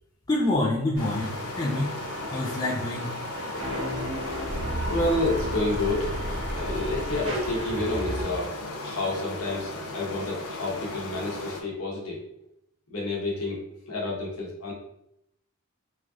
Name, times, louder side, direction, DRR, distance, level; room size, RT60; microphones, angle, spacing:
voice 1, 0.3-1.9 2.3-3.2, left 2 dB, 15° left, -3 dB, 0.3 m, -27 dB
sound 1, 1.0-11.6, left 2 dB, 85° left, 0.5 m, -36 dB
sound 2, 1.0-8.2, equal, 60° right, 1.0 m, -33 dB
voice 2, 4.9-6.1 6.5-8.5 8.8-12.2 12.9-14.7, left 2 dB, 65° left, -2 dB, 0.9 m, -29 dB
3.1 x 2.3 x 2.5 m, 0.79 s
head